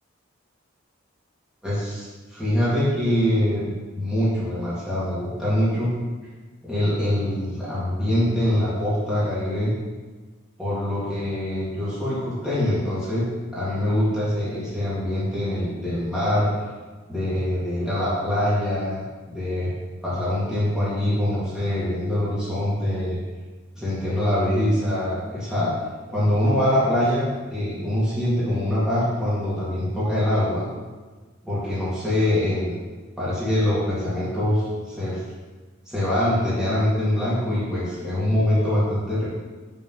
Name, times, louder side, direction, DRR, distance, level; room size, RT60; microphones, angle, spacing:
voice 1, 1.6-3.6 3.9-6.0 6.6-9.7 10.6-13.3 13.5-16.5 17.1-19.7 20.0-23.2 23.7-25.7 26.1-30.6 31.4-32.7 33.2-35.2 35.9-39.3, left 1 dB, 5° right, -10 dB, 2.1 m, -24 dB
5.9 x 3.9 x 5.4 m, 1.3 s
head